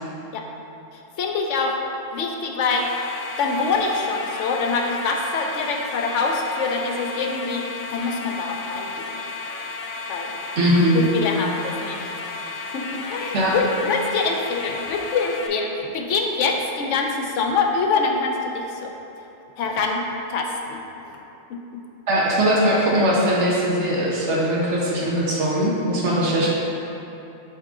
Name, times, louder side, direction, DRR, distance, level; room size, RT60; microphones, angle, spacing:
voice 1, 0.9-1.7 2.1-2.9 3.4-7.6 7.9-9.2 10.1-10.3 10.9-12.0 12.7-18.9 19.6-20.0 20.3-20.8 21.1-21.2 21.5-21.6, left 4 dB, 80° left, 2 dB, 1.0 m, -25 dB
sound 1, 2.7-15.5, left 3 dB, 60° left, 0.6 m, -33 dB
voice 2, 10.6-11.1 13.3-13.5 22.1-26.5, equal, 70° right, -4 dB, 1.2 m, -20 dB
7.3 x 3.7 x 3.7 m, 2.8 s
omnidirectional pair, 1.3 m